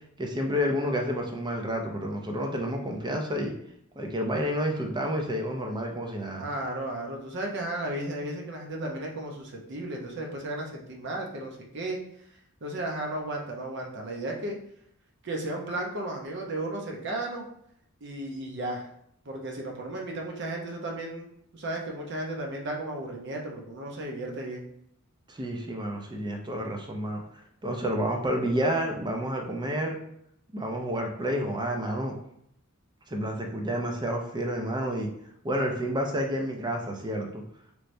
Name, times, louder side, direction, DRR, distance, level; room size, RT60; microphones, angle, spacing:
voice 1, 0.2-3.5 4.0-6.5 25.3-27.2 27.6-30.0 30.5-32.1 33.1-35.1 35.4-37.4, equal, 20° right, 2 dB, 0.4 m, -29 dB
voice 2, 6.4-12.0 12.6-14.6 15.2-17.4 18.0-18.9 19.3-21.3 21.5-24.6, right 1 dB, 55° right, 1 dB, 0.7 m, -34 dB
3.2 x 3.1 x 2.6 m, 0.71 s
head